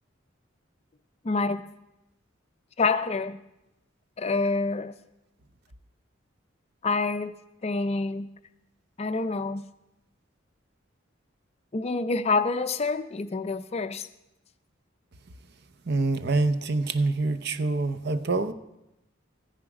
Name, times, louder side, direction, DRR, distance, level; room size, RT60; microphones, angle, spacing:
voice 1, 1.2-1.6 2.8-3.4 4.2-4.9 6.8-7.3 7.6-8.3 9.0-9.6 11.7-14.1, left 3 dB, 30° left, 12 dB, 0.5 m, -27 dB
voice 2, 15.9-18.5, right 3 dB, 55° right, 11 dB, 0.7 m, -26 dB
14.0 x 10.0 x 4.8 m, 0.91 s
head